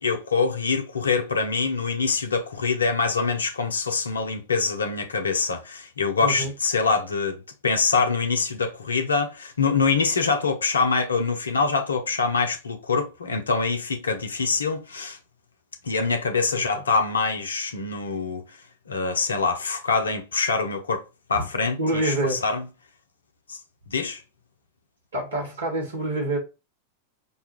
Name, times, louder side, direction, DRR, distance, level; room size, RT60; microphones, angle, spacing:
voice 1, 0.0-15.2 15.8-18.6 18.9-22.6 23.5-23.6 23.9-24.2, left 4 dB, 70° left, 0.6 m, -25 dB
voice 2, 6.2-6.5 16.5-16.8 21.3-21.5 21.8-22.4 25.1-26.4, right 1 dB, 75° right, 1.9 m, -27 dB
5.4 x 2.4 x 2.8 m
figure-of-eight pair, 90°, 0 cm